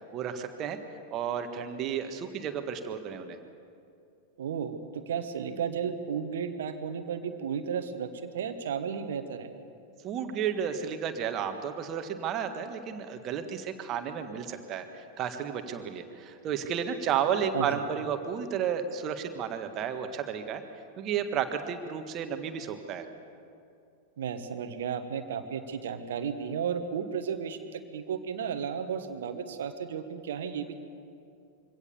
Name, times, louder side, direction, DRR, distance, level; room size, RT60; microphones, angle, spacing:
voice 1, 0.1-0.8 1.1-3.4 10.0-20.6 21.0-23.1, right 8 dB, 35° right, 7 dB, 1.6 m, -32 dB
voice 2, 4.4-9.5 17.5-17.8 24.2-30.7, right 7 dB, 60° right, 9 dB, 1.3 m, -34 dB
24.0 x 17.0 x 7.1 m, 2.5 s
figure-of-eight pair, 90°, 0 cm